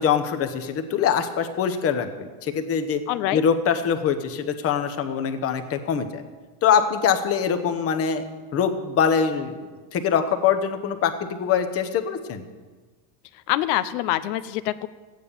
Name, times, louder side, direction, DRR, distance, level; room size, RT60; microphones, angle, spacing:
voice 1, 0.0-3.0 3.3-6.2 6.6-8.2 8.5-9.5 9.9-12.4, left 7 dB, 30° left, 7 dB, 1.0 m, -23 dB
voice 2, 3.1-3.4 13.5-14.9, left 14 dB, 70° left, 14 dB, 0.9 m, -25 dB
14.5 x 9.5 x 6.9 m, 1.4 s
cardioid pair, 160°, 49 cm